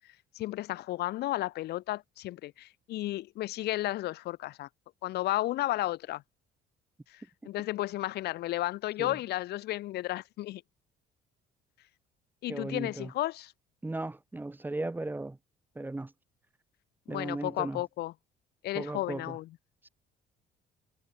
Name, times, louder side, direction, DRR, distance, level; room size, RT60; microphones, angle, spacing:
voice 1, 0.3-4.7 5.0-6.2 7.1-10.6 12.4-13.5 17.1-18.1 18.6-19.5, left 16 dB, 75° left, 1.3 m, -33 dB
voice 2, 12.5-13.1 13.8-15.4 15.7-16.1 17.1-17.8 18.7-19.4 19.8-19.9, right 2 dB, 10° right, 1.3 m, -36 dB
cardioid pair, 110°, 17 cm